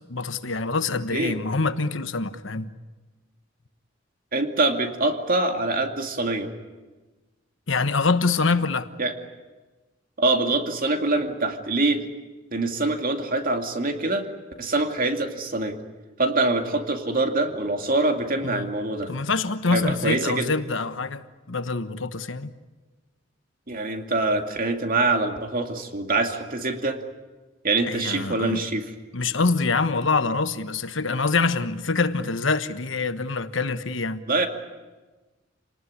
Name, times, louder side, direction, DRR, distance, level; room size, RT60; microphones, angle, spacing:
voice 1, 0.1-2.7 7.7-8.9 18.4-18.7 19.1-22.5 27.8-28.6 29.1-34.2, left 4 dB, 75° left, 1.3 m, -25 dB
voice 2, 4.3-6.5 9.0-9.1 10.2-12.0 12.5-14.3 14.6-15.8 16.2-19.1 19.7-20.5 23.7-27.0 27.6-28.8 34.3-34.5, right 2 dB, 45° right, 2.5 m, -24 dB
28.5 x 19.0 x 9.7 m
head